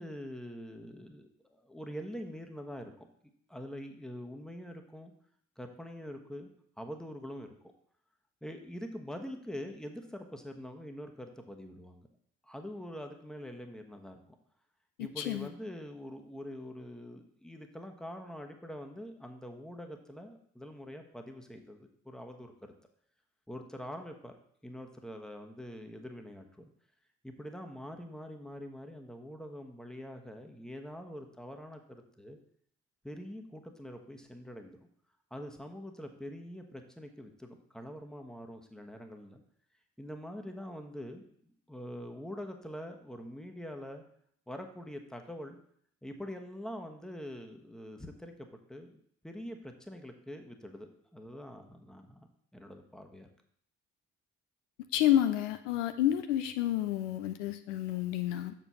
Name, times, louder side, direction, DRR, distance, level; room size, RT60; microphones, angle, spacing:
voice 1, 0.0-3.1 3.5-5.1 5.6-6.5 6.8-7.7 8.4-12.1 12.4-14.2 15.0-22.7 23.5-24.3 24.6-26.7 27.2-32.4 33.0-34.9 35.3-39.4 40.0-44.0 44.5-45.6 46.0-52.3 52.5-53.3, equal, ahead, 4 dB, 1.2 m, -44 dB
voice 2, 15.2-15.5 54.9-58.5, left 12 dB, 80° left, 9 dB, 0.6 m, -29 dB
6.7 x 4.4 x 6.2 m, 0.64 s
figure-of-eight pair, 40°, 37 cm